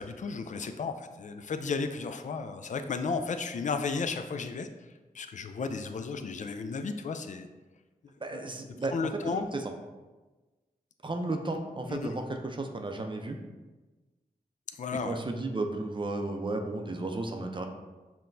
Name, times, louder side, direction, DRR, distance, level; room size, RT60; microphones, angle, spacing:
voice 1, 0.0-4.7 5.1-7.5 8.9-9.5 11.9-12.1 14.8-15.2, left 4 dB, 55° left, 8 dB, 0.4 m, -33 dB
voice 2, 8.2-8.9 9.5-9.7 11.0-13.4 15.0-17.6, right 2 dB, 30° right, 4 dB, 0.5 m, -33 dB
5.8 x 2.2 x 2.6 m, 1.2 s
cardioid pair, 45°, 16 cm